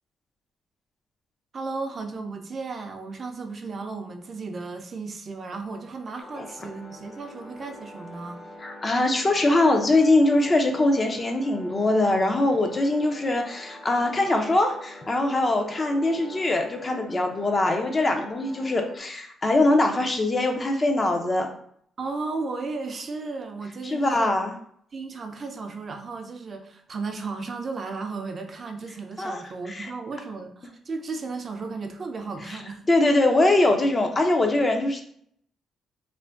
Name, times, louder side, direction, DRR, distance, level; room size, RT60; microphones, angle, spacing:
voice 1, 1.5-8.4 22.0-24.3 24.9-32.9, right 4 dB, 40° right, 5 dB, 0.4 m, -34 dB
sound 1, 6.2-19.0, left 1 dB, 60° left, 1.2 m, -45 dB
voice 2, 8.6-21.5 23.8-24.5 29.2-29.9 32.5-32.6 32.9-35.0, left 2 dB, 30° left, 3 dB, 0.5 m, -22 dB
2.5 x 2.1 x 3.3 m, 0.65 s
cardioid pair, 90°, 0 cm